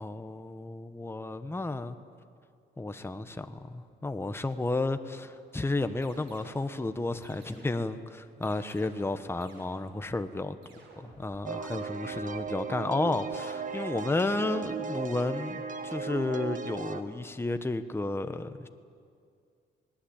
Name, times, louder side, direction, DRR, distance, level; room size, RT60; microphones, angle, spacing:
voice 1, 0.0-2.0 2.8-10.6 11.0-18.7, left 2 dB, 10° left, 9 dB, 1.1 m, -32 dB
sound 1, 6.0-6.7 7.2-7.9 8.4-9.2 9.4-10.1 10.6-11.3 11.6-12.3, right 4 dB, 90° right, 6.7 m, -57 dB
sound 2, 11.5-17.0, right 5 dB, 40° right, 1.6 m, -36 dB
27.5 x 19.5 x 8.8 m, 2.3 s
cardioid pair, 90°, 20 cm